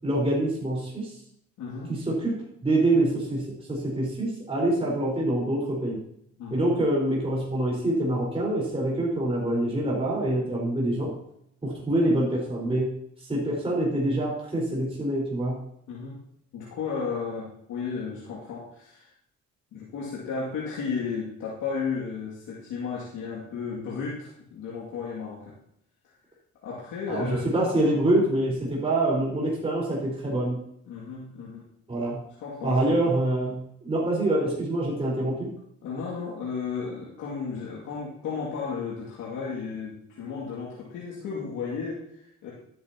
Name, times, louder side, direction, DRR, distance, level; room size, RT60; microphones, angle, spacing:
voice 1, 0.0-1.1 1.9-2.3 2.6-6.0 6.5-11.2 11.6-15.7 27.1-30.6 31.9-32.2 32.6-35.5, right 1 dB, 20° right, -5 dB, 4.6 m, -25 dB
voice 2, 1.6-1.9 6.4-6.7 15.9-16.2 16.5-19.1 19.7-25.5 26.6-27.4 30.9-31.6 32.4-33.1 35.8-42.5, left 5 dB, 90° left, -6 dB, 2.5 m, -34 dB
12.5 x 10.5 x 2.9 m, 0.74 s
cardioid pair, 90°, 30 cm